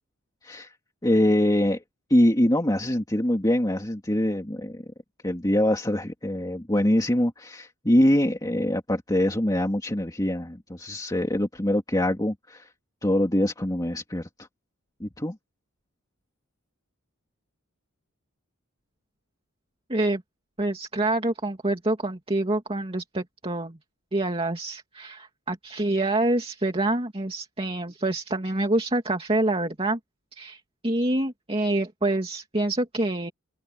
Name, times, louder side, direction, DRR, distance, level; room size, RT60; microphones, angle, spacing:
voice 1, 1.0-1.8 2.1-4.8 5.2-12.7 13.0-14.5 15.0-15.4, left 1 dB, 20° left, 2.5 m, -24 dB
voice 2, 19.9-20.2 20.6-23.8 24.1-30.0 30.3-33.3, right 2 dB, 25° right, 2.6 m, -26 dB
open air
head